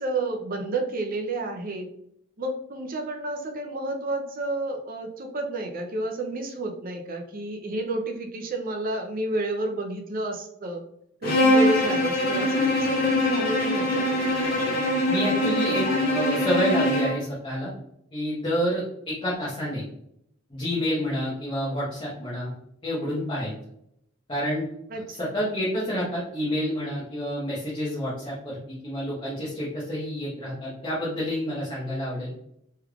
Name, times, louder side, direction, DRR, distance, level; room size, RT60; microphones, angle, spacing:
voice 1, 0.0-1.9 2.4-10.8 11.2-14.0 24.9-25.3, right 2 dB, 45° right, 3 dB, 0.5 m, -30 dB
Bowed string instrument, 11.2-17.2, left 1 dB, 50° left, 1.1 m, -23 dB
voice 2, 15.1-17.7 18.1-19.8 20.5-22.5 22.8-23.5 24.3-24.6 25.1-32.3, equal, 25° left, -8 dB, 1.0 m, -29 dB
3.4 x 3.2 x 2.3 m, 0.73 s
head